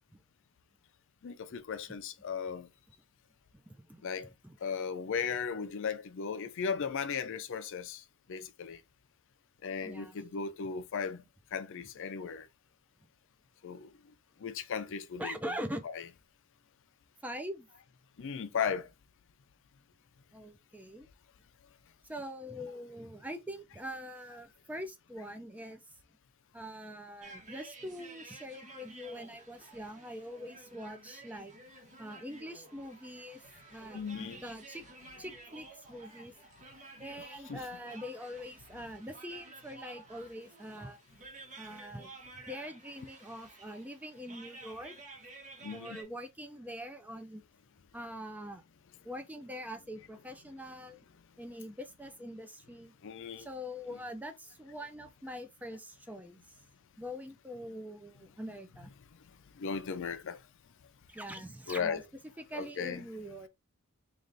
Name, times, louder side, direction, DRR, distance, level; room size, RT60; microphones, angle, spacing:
voice 1, 1.2-2.7 4.0-4.3 4.6-8.0 8.3-8.8 9.6-11.2 11.5-12.5 13.6-13.9 14.4-15.3 15.8-16.0 18.2-18.9 33.9-34.4 37.5-37.6 45.6-46.0 53.0-53.5 59.5-60.4 61.7-62.0 62.5-63.0, left 6 dB, 60° left, 0.4 m, -36 dB
voice 2, 3.5-4.0 4.4-4.6 9.8-10.2 15.2-15.8 17.2-17.7 20.3-21.1 22.0-25.8 26.5-31.6 32.0-33.4 33.7-34.8 35.2-36.3 37.0-41.0 41.6-42.1 42.5-44.9 45.7-47.4 47.9-48.6 49.0-51.0 51.4-52.9 53.4-56.5 57.0-58.9 61.1-62.0 62.4-63.5, equal, 5° right, 0.4 m, -43 dB
sound 1, 27.2-46.0, right 2 dB, 35° right, 1.1 m, -52 dB
3.3 x 2.5 x 3.8 m
head